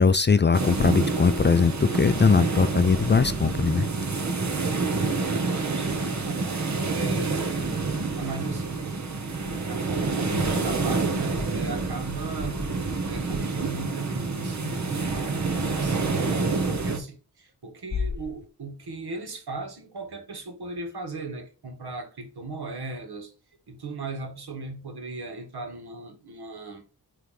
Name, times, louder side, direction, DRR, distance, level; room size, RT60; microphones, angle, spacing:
voice 1, 0.0-3.9, left 5 dB, 30° left, 0.4 m, -20 dB
sound 1, 0.5-17.0, right 3 dB, 45° right, 1.2 m, -28 dB
voice 2, 5.3-7.7 8.2-9.0 9.4-23.3 23.7-26.8, right 3 dB, 75° right, 1.8 m, -37 dB
9.1 x 3.3 x 3.2 m
wide cardioid pair, 130°, 39 cm